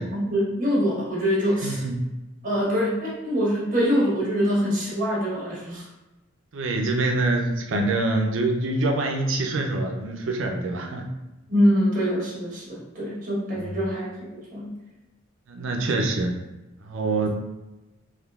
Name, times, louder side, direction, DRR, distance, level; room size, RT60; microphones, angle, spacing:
voice 1, 0.0-1.8 2.4-5.9 11.5-14.7, equal, 40° right, -6 dB, 1.2 m, -24 dB
voice 2, 1.6-2.0 6.5-11.0 15.5-16.3 16.8-17.3, right 2 dB, 70° right, 3 dB, 0.5 m, -25 dB
3.6 x 3.1 x 2.3 m, 1.0 s
head